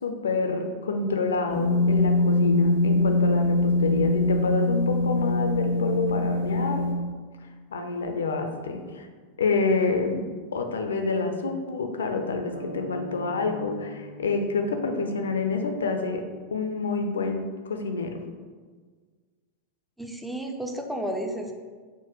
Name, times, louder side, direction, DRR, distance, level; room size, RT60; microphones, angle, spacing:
voice 1, 0.0-6.9 7.7-9.1 9.4-10.2 10.5-16.2 16.5-18.2, left 3 dB, 65° left, 5 dB, 0.4 m, -27 dB
sound 1, 1.5-6.9, left 2 dB, 45° right, 1.1 m, -23 dB
sound 2, 12.5-16.4, right 1 dB, 85° right, 1.1 m, -42 dB
voice 2, 20.0-21.5, right 1 dB, ahead, 3 dB, 0.4 m, -32 dB
5.8 x 2.1 x 3.0 m, 1.5 s
figure-of-eight pair, 90°, 0 cm